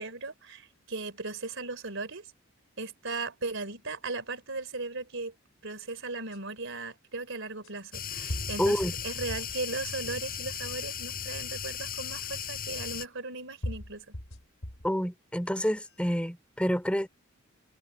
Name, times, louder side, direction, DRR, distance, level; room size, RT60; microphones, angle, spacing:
voice 1, 0.0-2.3 2.8-5.3 5.6-14.1, right 3 dB, 65° right, 4.1 m, -37 dB
sound 1, 6.3-6.4 7.6-7.7 8.3-9.6 10.1-10.7 11.6-11.7 13.0-13.1 13.6-14.9 15.5-16.0, equal, 70° left, 3.9 m, -39 dB
sound 2, 7.9-13.1, left 7 dB, 45° left, 7.7 m, -36 dB
voice 2, 8.6-8.9 14.8-17.1, equal, 5° left, 5.1 m, -28 dB
head